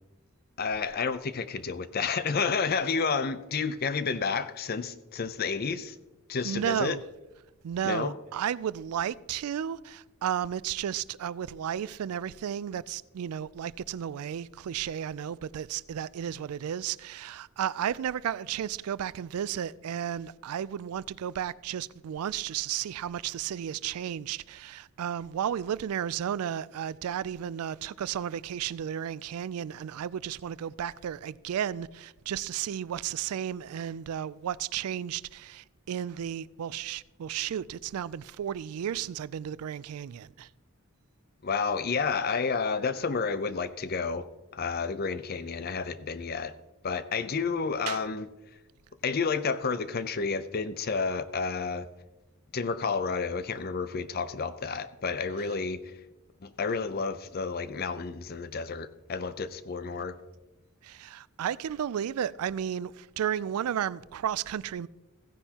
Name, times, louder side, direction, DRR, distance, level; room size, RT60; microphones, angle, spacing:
voice 1, 0.6-6.0 6.3-7.0 7.8-8.2 41.4-46.5 46.8-48.3 49.0-51.9 52.5-55.8 56.4-60.2, left 5 dB, 45° left, 0.5 m, -30 dB
voice 2, 6.4-7.0 7.6-40.5 47.9-48.0 60.8-64.9, right 9 dB, 85° right, 0.3 m, -33 dB
16.0 x 9.9 x 2.9 m
head